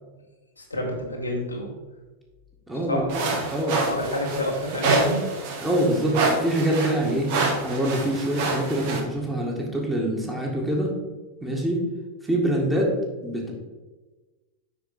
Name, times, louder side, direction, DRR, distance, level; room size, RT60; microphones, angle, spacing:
voice 1, 0.6-1.7 2.9-3.1 3.9-5.3 7.0-7.3, left 1 dB, 80° left, 0 dB, 1.5 m, -29 dB
voice 2, 2.7-3.2 3.5-3.8 5.6-7.3 7.6-11.0 11.4-11.9 12.3-12.9 13.2-13.5, right 1 dB, 10° right, -2 dB, 1.9 m, -25 dB
sound 1, 3.1-9.0, right 3 dB, 50° right, 1.5 m, -27 dB
6.9 x 5.9 x 4.4 m, 1.2 s
figure-of-eight pair, 90°, 0 cm